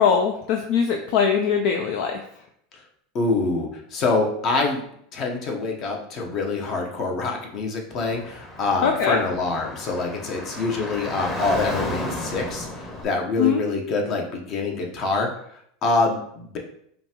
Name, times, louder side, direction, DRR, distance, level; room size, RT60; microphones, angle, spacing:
voice 1, 0.0-2.2 8.8-9.2 13.4-13.6, left 7 dB, 65° left, 4 dB, 0.4 m, -21 dB
voice 2, 3.1-4.8 5.1-15.3 15.8-16.6, left 3 dB, 45° left, 1 dB, 1.0 m, -25 dB
Car / Traffic noise roadway noise, 8.0-13.0, left 1 dB, 25° left, 1.0 m, -33 dB
5.1 x 2.5 x 2.9 m, 0.68 s
hypercardioid pair, 95°, 0 cm